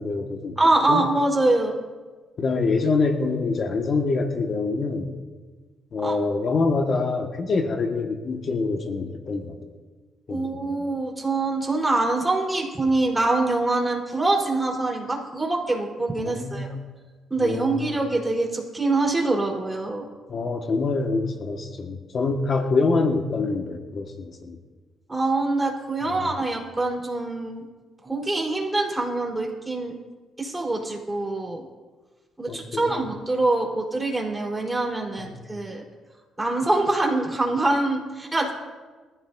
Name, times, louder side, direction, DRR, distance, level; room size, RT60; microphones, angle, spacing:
voice 1, 0.0-0.6 0.9-1.1 2.4-5.1 5.9-9.6 10.3-10.8 16.2-16.7 17.4-17.9 20.3-24.6 26.0-26.4 32.5-33.0 35.2-35.4, left 3 dB, 50° left, 2 dB, 1.7 m, -26 dB
voice 2, 0.6-1.8 6.0-6.2 10.3-16.8 17.3-20.1 25.1-27.6 28.0-30.0 30.4-31.6 32.4-35.8 36.4-38.5, right 2 dB, 15° right, -1 dB, 4.2 m, -24 dB
24.0 x 14.5 x 2.7 m, 1.4 s
cardioid pair, 90°, 0 cm